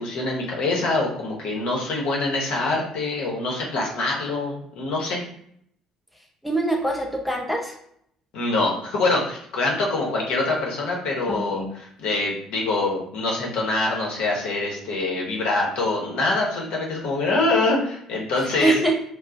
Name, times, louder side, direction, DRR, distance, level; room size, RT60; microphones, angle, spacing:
voice 1, 0.0-5.2 8.3-18.8, left 2 dB, 60° left, -2 dB, 0.8 m, -24 dB
voice 2, 6.4-7.7 11.3-11.7 18.6-18.9, right 2 dB, ahead, 0 dB, 0.5 m, -23 dB
2.3 x 2.0 x 3.8 m, 0.69 s
figure-of-eight pair, 50°, 2 cm